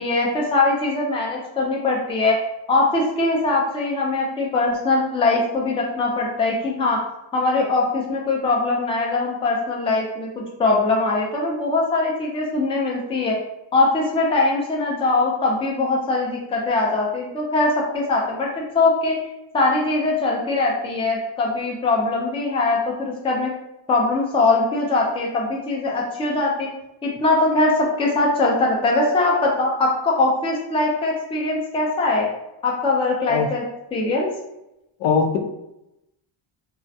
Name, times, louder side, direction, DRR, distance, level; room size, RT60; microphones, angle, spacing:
voice 1, 0.0-2.4 2.7-7.0 7.3-13.4 13.7-19.2 19.5-23.5 23.9-26.7 27.0-27.7 28.0-32.3 32.6-33.6 33.9-34.3, left 3 dB, 15° left, -2 dB, 0.3 m, -21 dB
voice 2, 35.0-35.4, left 5 dB, 80° left, 4 dB, 0.5 m, -20 dB
2.3 x 2.1 x 2.6 m, 0.88 s
cardioid pair, 135°, 48 cm